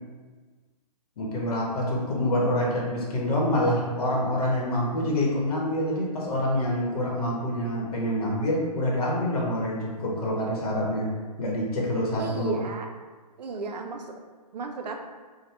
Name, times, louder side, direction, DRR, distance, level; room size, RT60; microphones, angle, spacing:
voice 1, 1.2-11.1 11.4-12.6, left 1 dB, 65° left, -3 dB, 0.8 m, -26 dB
voice 2, 12.2-12.9 13.4-14.2 14.5-15.0, right 4 dB, 80° right, 4 dB, 0.5 m, -34 dB
2.8 x 2.1 x 3.2 m, 1.4 s
hypercardioid pair, 145°, 21 cm